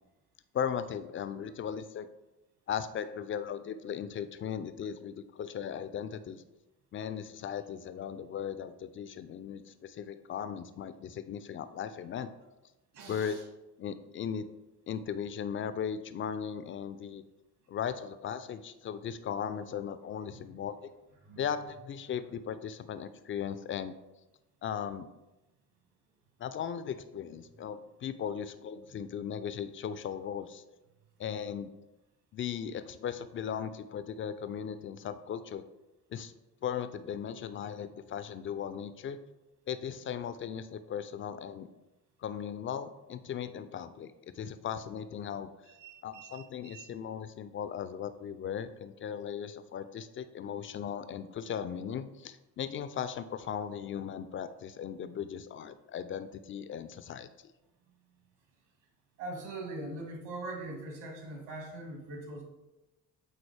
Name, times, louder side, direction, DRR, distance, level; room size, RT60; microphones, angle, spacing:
voice 1, 0.5-2.1 2.7-6.4 6.9-12.3 13.1-13.4 13.8-14.4 14.9-17.2 17.7-20.9 21.4-23.9 24.6-25.1 26.4-30.6 31.2-31.7 32.3-35.6 36.1-36.3 36.6-39.2 39.7-41.7 42.2-45.7 46.0-57.3, left 8 dB, 30° left, 12 dB, 0.4 m, -37 dB
voice 2, 12.9-13.4 20.3-20.4 21.2-21.4 45.7-46.9 59.2-62.4, right 2 dB, 60° right, 1 dB, 2.0 m, -42 dB
8.8 x 4.0 x 3.3 m, 1.0 s
figure-of-eight pair, 45°, 48 cm